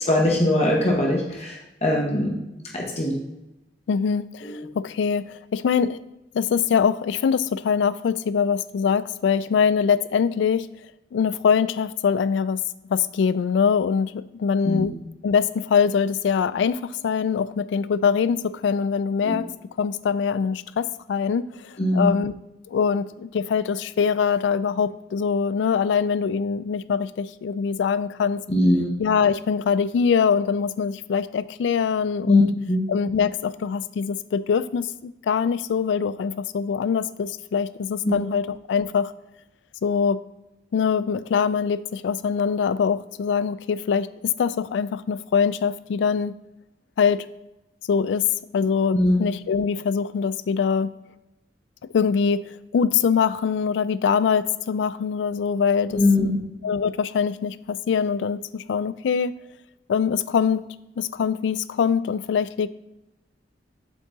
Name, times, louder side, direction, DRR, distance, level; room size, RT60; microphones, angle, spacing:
voice 1, 0.1-2.4 2.7-3.2 4.4-4.6 14.6-14.9 19.2-19.4 21.8-22.1 28.5-29.0 32.3-32.9 38.0-38.3 48.9-49.2 55.9-56.4, left 1 dB, 35° left, -1 dB, 0.9 m, -21 dB
voice 2, 3.9-6.0 6.3-10.7 11.1-12.6 12.9-14.9 15.2-19.5 19.8-22.3 22.7-28.4 29.0-32.5 32.9-39.1 39.8-40.2 40.7-46.3 47.0-47.3 47.9-48.2 48.5-50.9 51.9-56.3 56.6-59.3 59.9-60.6 61.0-62.7, left 6 dB, 75° left, 16 dB, 0.3 m, -23 dB
7.2 x 3.7 x 4.0 m, 0.94 s
head